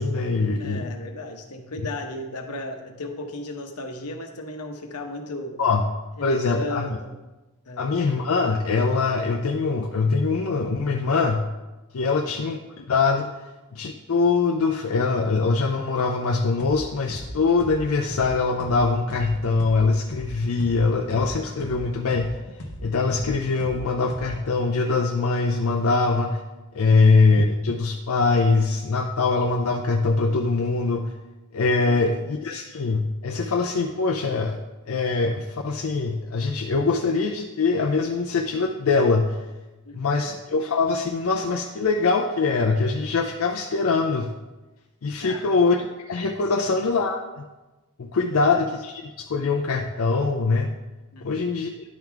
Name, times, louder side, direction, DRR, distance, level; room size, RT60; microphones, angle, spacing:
voice 1, 0.0-0.9 5.6-5.8 6.2-7.0 7.8-11.5 11.9-13.3 13.7-22.3 22.8-26.4 26.7-31.1 31.5-34.6 34.9-39.4 40.0-44.3 45.0-47.2 48.0-50.7 51.2-51.7, left 4 dB, 70° left, 2 dB, 0.5 m, -23 dB
voice 2, 0.6-5.6 6.2-7.2 7.7-7.9 12.1-12.3 31.8-32.6 39.9-40.4 45.2-45.6 46.6-46.7 48.3-48.6 51.1-51.6, left 2 dB, 90° left, 5 dB, 0.9 m, -36 dB
sound 1, 16.6-16.8 17.1-20.8 21.1-24.5, left 1 dB, 50° left, 1.0 m, -38 dB
10.5 x 3.9 x 4.6 m, 1.1 s
head